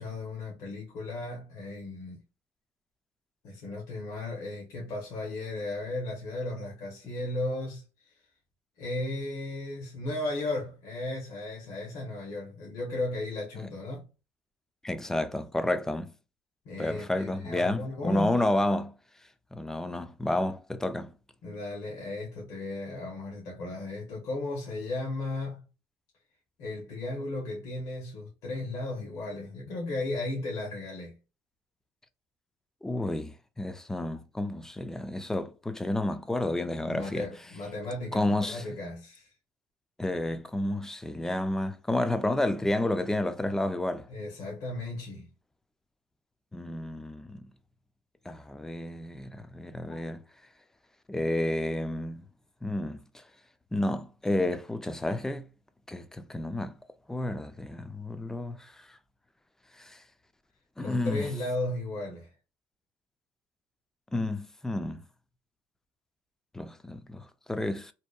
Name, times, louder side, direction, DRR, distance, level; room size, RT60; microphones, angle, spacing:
voice 1, 0.0-2.2 3.4-8.1 8.8-14.1 16.6-18.4 21.4-25.6 26.6-31.1 36.8-39.3 44.1-45.3 49.9-50.1 60.8-62.3, left 2 dB, 60° left, 0.9 m, -35 dB
voice 2, 14.8-16.1 16.8-18.9 19.5-21.1 32.8-37.3 38.1-38.6 40.0-44.1 46.5-47.4 48.3-50.2 51.1-52.2 52.6-53.2 53.7-55.5 55.9-56.7 57.1-58.7 59.8-60.0 60.8-61.3 64.1-65.0 66.5-67.9, left 1 dB, 5° left, 0.3 m, -30 dB
2.8 x 2.1 x 2.3 m
supercardioid pair, 95°, 7 cm